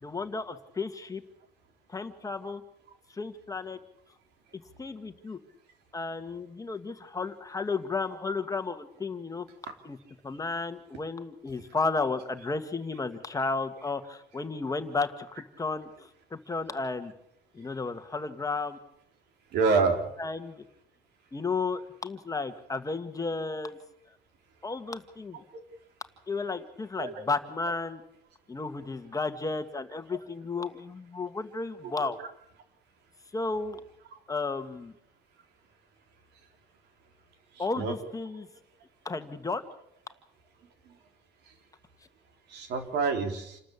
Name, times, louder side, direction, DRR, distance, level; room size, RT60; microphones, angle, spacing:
voice 1, 0.0-1.2 1.9-2.6 3.1-3.8 4.8-5.4 5.9-9.5 9.8-10.0 10.2-17.1 17.5-18.8 20.2-20.6 21.3-23.8 24.6-25.4 26.3-28.0 28.5-32.2 33.3-33.8 34.3-34.9 37.6-38.5 39.1-39.7, left 4 dB, 20° left, 8 dB, 1.8 m, -33 dB
voice 2, 19.5-20.0 27.0-27.1 31.8-31.9 37.6-37.9 42.5-43.6, right 4 dB, 80° right, 6 dB, 3.7 m, -27 dB
28.0 x 13.0 x 8.5 m, 0.78 s
cardioid pair, 110°, 17 cm